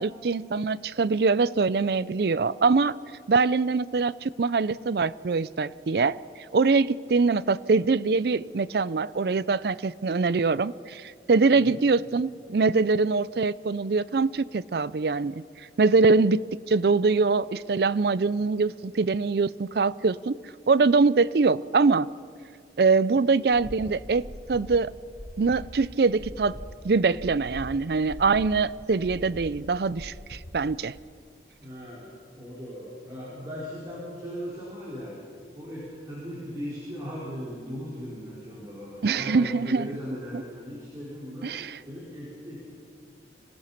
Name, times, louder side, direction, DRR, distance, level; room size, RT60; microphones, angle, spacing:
voice 1, 0.0-3.0 3.3-6.2 6.5-15.4 15.8-20.4 20.7-22.1 22.8-24.9 25.4-26.5 26.8-31.0 39.0-39.9 40.3-40.4 41.4-41.8, right 4 dB, 60° right, 0.4 m, -23 dB
sound 1, 23.5-30.9, equal, 65° left, 6.1 m, -43 dB
voice 2, 31.6-35.1 35.5-41.5 41.8-42.6, equal, 20° right, 4.9 m, -38 dB
26.0 x 18.0 x 5.9 m
head